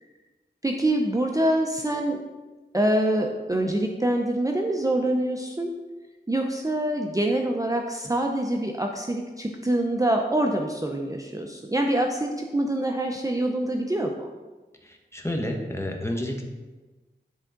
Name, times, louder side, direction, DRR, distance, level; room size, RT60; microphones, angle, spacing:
voice 1, 0.6-2.2 2.7-5.7 6.3-14.3, right 1 dB, 20° right, 2 dB, 0.5 m, -25 dB
voice 2, 14.8-16.4, left 1 dB, 15° left, 2 dB, 1.0 m, -30 dB
10.0 x 3.6 x 3.8 m, 1.2 s
wide cardioid pair, 60°, 18 cm